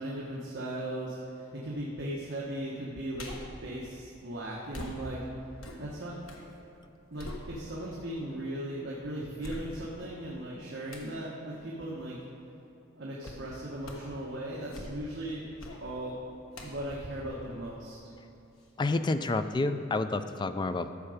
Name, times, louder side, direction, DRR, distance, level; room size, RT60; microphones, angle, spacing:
voice 1, 0.0-3.3 3.6-5.2 5.8-6.2 7.1-12.1 12.9-15.4 15.8-16.2 16.6-18.0, right 1 dB, 60° right, -5 dB, 1.2 m, -37 dB
sound 1, 3.1-3.6 4.7-6.5 6.8-8.0 8.5-8.6 9.4-10.1 10.9-11.2 13.2-13.5 13.8-14.2 14.6-15.2 15.6-15.9 16.5-18.2 18.6-18.7, left 1 dB, 75° left, 1.3 m, -44 dB
voice 2, 18.8-20.9, left 2 dB, 20° left, 10 dB, 0.3 m, -29 dB
13.5 x 6.8 x 5.0 m, 2.8 s
head